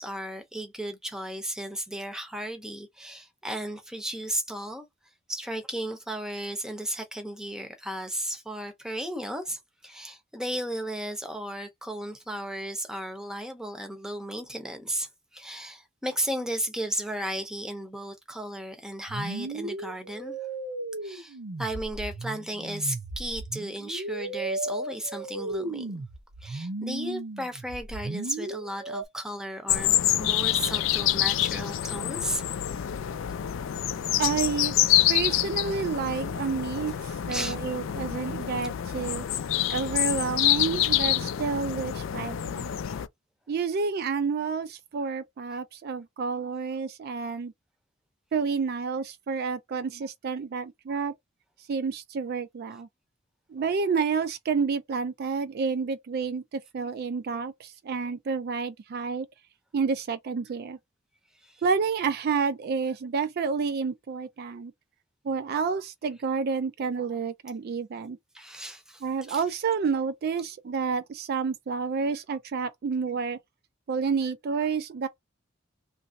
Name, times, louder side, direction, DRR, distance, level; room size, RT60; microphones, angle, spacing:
voice 1, 0.0-4.9 5.3-20.4 21.0-26.0 26.4-32.4 37.3-37.6 42.9-43.0 61.4-61.6 68.3-69.4, right 1 dB, 5° right, 0.7 m, -35 dB
sound 1, 19.1-29.0, right 2 dB, 70° right, 0.7 m, -35 dB
sound 2, 29.7-43.1, left 12 dB, 70° left, 0.4 m, -27 dB
voice 2, 34.2-34.8 35.1-39.3 39.7-42.7 43.5-47.5 48.3-51.1 51.7-52.9 53.5-59.3 59.7-60.8 61.6-64.7 65.2-68.2 69.0-73.4 73.9-75.1, right 5 dB, 50° right, 0.3 m, -29 dB
3.0 x 2.5 x 2.6 m
head